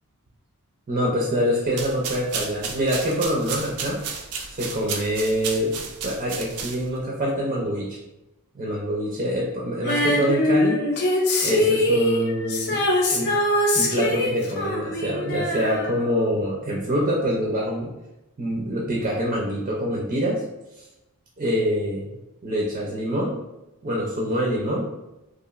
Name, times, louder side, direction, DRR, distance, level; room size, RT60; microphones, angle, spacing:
voice 1, 0.9-4.0 4.5-5.8 6.0-8.0 8.5-10.8 11.4-12.8 13.1-13.3 13.7-17.9 18.4-20.4 21.4-22.2 22.4-23.4 23.8-24.8, equal, 35° right, -3 dB, 0.4 m, -25 dB
sound 1, 1.7-7.0, right 5 dB, 90° right, 0.4 m, -33 dB
Female singing, 9.9-16.5 16.8-16.9, left 1 dB, 50° left, 0.5 m, -23 dB
2.9 x 2.5 x 2.4 m, 0.97 s
head